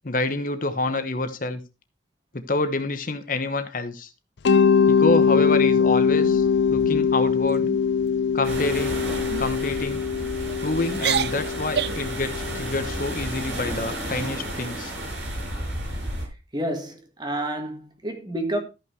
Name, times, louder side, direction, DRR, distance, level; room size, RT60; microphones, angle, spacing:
voice 1, 0.0-1.6 2.3-4.1 4.9-7.6 8.3-9.0 9.4-10.1 10.6-14.9, left 2 dB, 45° left, 1.0 m, -27 dB
Mallet percussion, 4.4-13.2, left 6 dB, 75° left, 0.6 m, -22 dB
sound 1, 5.2-5.8 6.2-6.5 6.8-7.1 7.5-7.8 8.5-8.8 9.3-9.5 10.2-10.6 10.9-12.1, right 7 dB, 65° right, 0.6 m, -30 dB
sound 2, 8.4-16.3, right 1 dB, 85° right, 5.6 m, -32 dB
voice 2, 16.5-18.6, right 1 dB, 25° right, 1.8 m, -29 dB
13.0 x 5.9 x 4.5 m
head